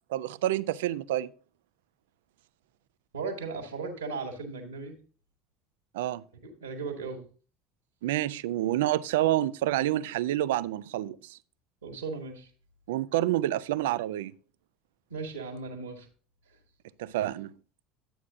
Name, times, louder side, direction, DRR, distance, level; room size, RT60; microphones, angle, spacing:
voice 1, 0.1-1.3 5.9-6.2 8.0-11.4 12.9-14.3 17.0-17.5, right 14 dB, 70° right, 0.4 m, -28 dB
voice 2, 3.1-5.0 6.4-7.3 11.8-12.5 15.1-16.1 16.5-16.6 17.1-17.2, right 4 dB, 85° right, 1.6 m, -37 dB
11.5 x 8.3 x 2.6 m
figure-of-eight pair, 70°, 0 cm